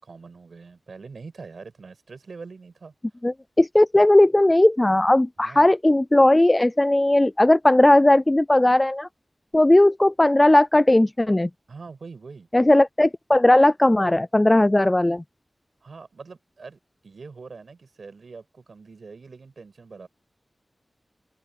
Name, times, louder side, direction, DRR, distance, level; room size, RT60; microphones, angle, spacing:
voice 1, 0.0-2.9 5.4-5.7 11.7-12.5 15.8-20.1, right 4 dB, 80° right, 5.6 m, -43 dB
voice 2, 3.2-9.1 9.5-11.5 12.5-15.2, left 1 dB, 20° left, 0.3 m, -17 dB
open air
wide cardioid pair, 100°, 0 cm